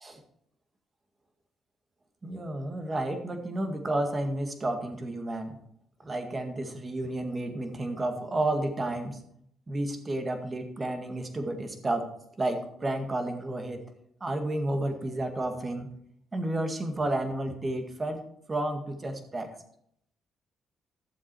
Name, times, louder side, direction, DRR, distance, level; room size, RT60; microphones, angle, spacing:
voice 1, 2.2-5.6 6.0-9.2 9.7-12.1 12.4-13.8 14.2-15.9 16.3-18.2 18.5-19.5, right 1 dB, 30° right, 6 dB, 1.9 m, -31 dB
12.5 x 7.4 x 4.7 m, 0.70 s
cardioid pair, 90°, 0 cm